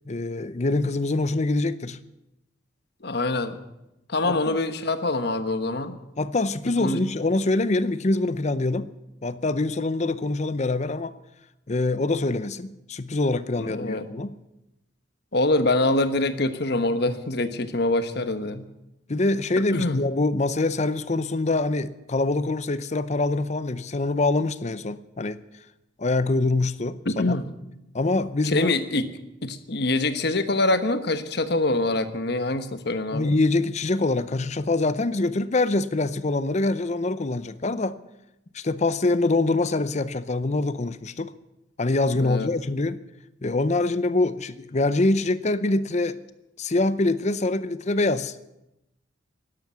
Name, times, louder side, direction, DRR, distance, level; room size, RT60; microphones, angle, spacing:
voice 1, 0.1-2.0 4.2-4.6 6.2-8.9 9.2-11.1 11.7-14.3 19.1-25.4 26.0-27.0 27.3-27.4 27.9-28.7 33.1-38.0 38.5-41.3 41.8-43.0 43.4-46.2 46.6-48.4, left 2 dB, 35° left, 0.6 m, -24 dB
voice 2, 3.0-3.6 4.1-5.9 6.8-7.0 13.6-14.1 15.3-18.6 19.7-20.0 27.0-27.5 28.4-29.0 29.4-33.3 42.2-42.5, left 2 dB, 55° left, 1.2 m, -24 dB
12.0 x 12.0 x 9.5 m
head